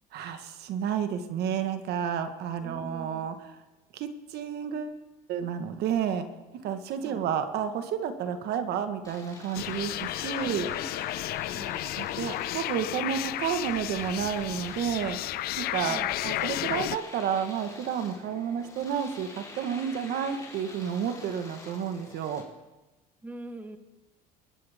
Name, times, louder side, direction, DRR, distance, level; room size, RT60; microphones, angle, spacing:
voice 1, 0.1-3.3 3.9-5.0 5.3-6.3 6.6-10.7 12.0-15.2 15.6-22.4, right 8 dB, 65° right, 8 dB, 1.4 m, -31 dB
voice 2, 2.6-3.3 7.0-7.2 10.4-10.5 10.8-11.8 15.9-16.2 23.2-23.8, right 1 dB, 10° right, 9 dB, 1.2 m, -44 dB
Domestic sounds home sounds, 9.0-22.5, left 3 dB, 20° left, 3.9 m, -47 dB
sound 1, 9.5-17.0, left 15 dB, 60° left, 0.5 m, -33 dB
23.0 x 12.5 x 3.6 m, 1.1 s
supercardioid pair, 95°, 18 cm